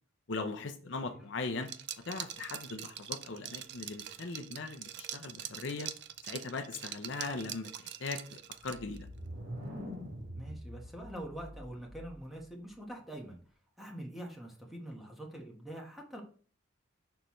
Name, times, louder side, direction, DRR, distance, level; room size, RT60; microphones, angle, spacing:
voice 1, 0.3-1.7 2.1-5.9 6.2-9.1, left 3 dB, 60° left, 6 dB, 0.6 m, -39 dB
Liquid, 1.6-9.0, right 11 dB, 55° right, 0.4 m, -44 dB
sound 1, 8.6-12.4, equal, 80° right, 2.1 m, -44 dB
voice 2, 10.3-13.4 13.8-16.2, right 1 dB, ahead, 0 dB, 1.3 m, -44 dB
6.6 x 5.6 x 3.1 m, 0.42 s
head